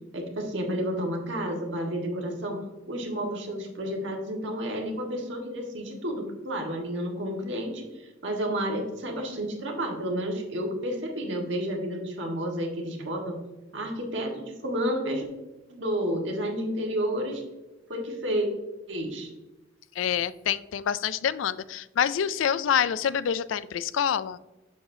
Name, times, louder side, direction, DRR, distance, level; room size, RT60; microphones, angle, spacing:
voice 1, 0.1-2.6 2.9-13.4 13.7-15.3 15.7-17.4 17.9-18.5 18.9-19.3, equal, 70° right, 1 dB, 1.6 m, -31 dB
voice 2, 20.0-24.4, left 8 dB, 75° left, 17 dB, 0.3 m, -27 dB
7.1 x 6.7 x 2.7 m, 1.1 s
head